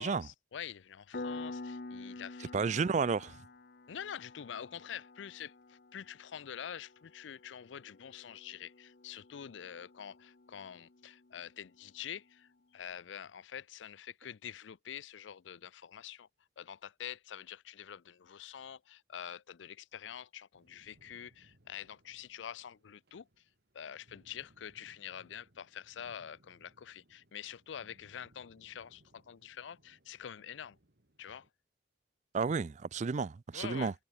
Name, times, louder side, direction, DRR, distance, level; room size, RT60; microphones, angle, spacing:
voice 1, 0.0-2.5 3.9-16.3 16.6-23.3 23.7-30.8 31.2-31.5 33.5-33.9, left 9 dB, 85° left, 0.5 m, -46 dB
Piano, 1.1-11.5, left 3 dB, 55° left, 0.9 m, -48 dB
voice 2, 2.5-3.4 32.3-33.9, right 5 dB, 40° right, 0.4 m, -32 dB
sound 1, 20.5-31.5, right 1 dB, 60° right, 2.3 m, -67 dB
head